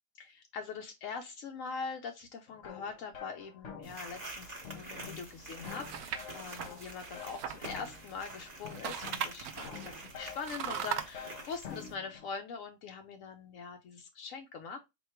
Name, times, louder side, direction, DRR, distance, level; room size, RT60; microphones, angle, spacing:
voice 1, 0.1-14.8, left 5 dB, 85° left, 0.7 m, -43 dB
sound 1, 2.5-12.3, left 7 dB, 55° left, 0.8 m, -49 dB
sound 2, 3.8-11.9, right 2 dB, 35° right, 0.7 m, -48 dB
sound 3, 5.5-8.3 8.6-11.0, right 9 dB, 70° right, 0.9 m, -39 dB
4.2 x 2.3 x 4.4 m
omnidirectional pair, 1.9 m